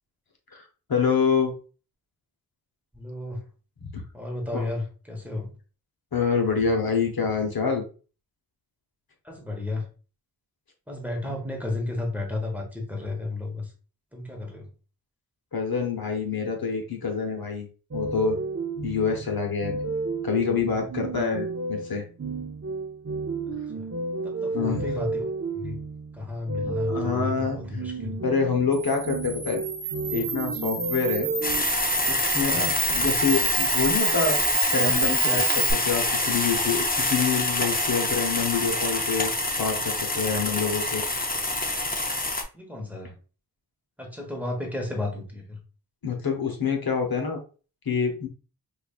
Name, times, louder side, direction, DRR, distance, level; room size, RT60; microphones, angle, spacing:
voice 1, 0.5-1.5 3.8-4.0 4.5-4.7 6.1-7.8 15.5-17.7 17.9-18.4 18.8-19.9 20.2-22.0 24.5-24.8 26.7-27.6 28.2-29.6 30.1-31.3 32.1-34.4 34.7-39.3 39.6-41.0 46.0-47.4 47.8-48.3, left 5 dB, 65° left, 3 dB, 0.9 m, -26 dB
voice 2, 2.9-3.4 4.1-5.5 9.2-9.9 10.9-13.7 14.1-14.7 23.7-23.9 24.2-25.2 25.5-25.8 26.1-28.2 32.5-32.7 42.5-43.2 44.0-45.6, left 2 dB, 5° right, 0 dB, 1.0 m, -33 dB
sound 1, 17.9-31.6, right 3 dB, 40° right, 0.5 m, -32 dB
Camera, 28.7-35.7, right 4 dB, 65° right, 0.9 m, -28 dB
sound 2, 31.4-42.4, left 2 dB, 25° left, 0.6 m, -26 dB
5.1 x 2.4 x 2.4 m, 0.36 s
wide cardioid pair, 70°, 39 cm